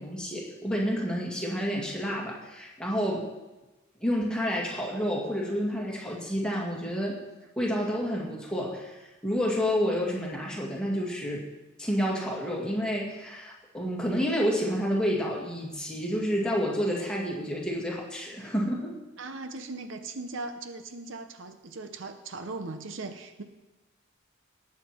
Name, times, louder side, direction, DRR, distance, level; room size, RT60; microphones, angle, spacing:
voice 1, 0.0-3.3 4.0-7.1 7.6-11.4 11.8-19.0, equal, 5° left, -3 dB, 2.1 m, -29 dB
voice 2, 19.2-23.4, right 3 dB, 65° right, 8 dB, 0.8 m, -39 dB
18.5 x 7.5 x 4.4 m, 1.1 s
head